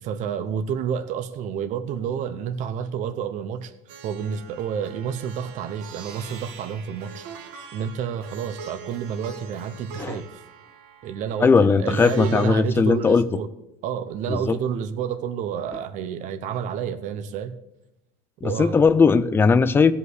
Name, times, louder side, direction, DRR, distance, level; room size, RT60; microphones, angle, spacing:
voice 1, 0.0-3.7 4.0-10.3 11.0-13.5 13.8-17.5 18.4-18.9, right 8 dB, 40° right, 9 dB, 0.8 m, -29 dB
Plucked string instrument, 3.9-12.5, right 6 dB, 65° right, 1.8 m, -43 dB
voice 2, 11.4-13.3 14.3-14.5 18.4-19.9, left 5 dB, 10° left, 14 dB, 0.3 m, -18 dB
16.0 x 5.5 x 7.9 m, 0.87 s
cardioid pair, 165°, 19 cm